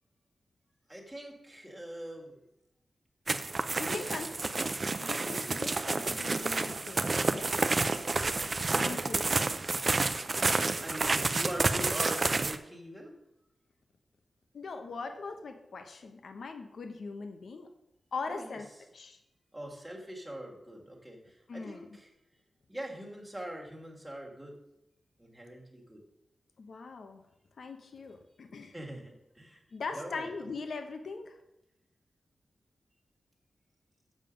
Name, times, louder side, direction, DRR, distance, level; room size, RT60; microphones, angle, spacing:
voice 1, 0.9-2.4 3.9-4.2 8.9-9.0 10.5-13.2 18.3-18.6 19.5-22.1 22.7-24.6 25.2-26.0 28.7-29.6 29.9-30.3, right 1 dB, 5° right, -2 dB, 1.8 m, -43 dB
sound 1, 3.3-12.6, right 3 dB, 35° right, 0.5 m, -30 dB
voice 2, 3.7-4.3 5.0-7.8 8.7-9.5 14.5-17.7 18.1-18.7 18.9-19.2 21.5-21.9 26.6-27.2 27.6-28.7 29.7-31.4, left 4 dB, 65° left, 6 dB, 1.0 m, -41 dB
7.5 x 7.4 x 5.2 m, 0.86 s
wide cardioid pair, 160°, 0 cm